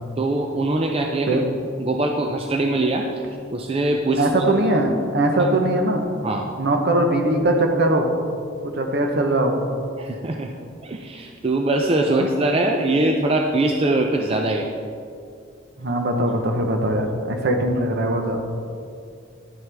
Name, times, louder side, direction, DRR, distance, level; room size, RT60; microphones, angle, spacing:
voice 1, 0.2-1.4 1.8-3.2 3.5-4.3 5.4-5.5 6.2-6.4 10.0-10.5 10.8-14.7, right 2 dB, 30° right, 2 dB, 0.4 m, -22 dB
voice 2, 4.2-6.1 6.6-8.1 8.6-9.6 12.1-12.3 15.8-18.4, right 1 dB, 55° right, 3 dB, 0.9 m, -21 dB
10.5 x 7.0 x 3.5 m, 2.4 s
head